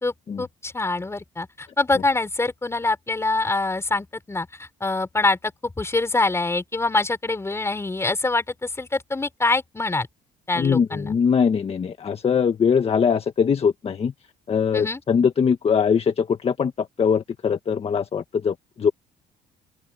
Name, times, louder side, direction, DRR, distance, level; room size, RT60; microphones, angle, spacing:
voice 1, 0.0-4.5 4.8-10.1 10.5-11.2 14.7-15.0, left 3 dB, 15° left, 4.1 m, -25 dB
voice 2, 10.6-14.1 14.5-18.9, left 6 dB, 35° left, 1.5 m, -22 dB
open air
cardioid pair, 110°, 17 cm